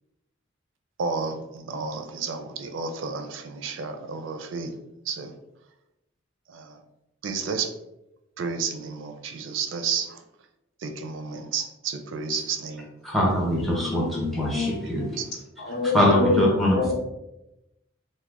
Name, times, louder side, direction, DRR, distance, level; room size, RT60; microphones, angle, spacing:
voice 1, 1.0-4.7 5.1-5.3 6.5-6.8 7.2-7.7 8.4-10.2 10.8-12.9 15.2-15.3, right 5 dB, 75° right, 0.4 m, -31 dB
voice 2, 13.0-15.1 15.9-16.9, left 1 dB, ahead, 0.8 m, -23 dB
voice 3, 13.8-14.7 15.6-16.9, left 3 dB, 55° left, 0.8 m, -27 dB
3.3 x 2.2 x 3.5 m
head